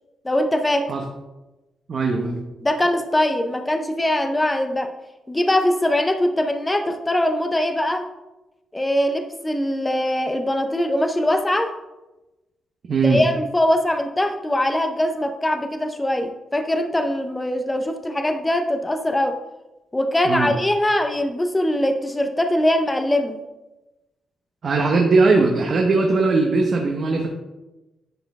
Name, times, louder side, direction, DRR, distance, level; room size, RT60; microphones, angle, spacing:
voice 1, 0.2-0.9 2.6-4.9 5.3-8.1 8.7-11.7 13.0-19.4 19.9-23.4, left 1 dB, 10° left, 6 dB, 0.5 m, -22 dB
voice 2, 1.9-2.4 12.9-13.2 20.3-20.5 24.6-27.3, right 3 dB, 45° right, 1 dB, 0.8 m, -19 dB
10.0 x 4.3 x 3.5 m, 1.0 s
cardioid pair, 130°, 0 cm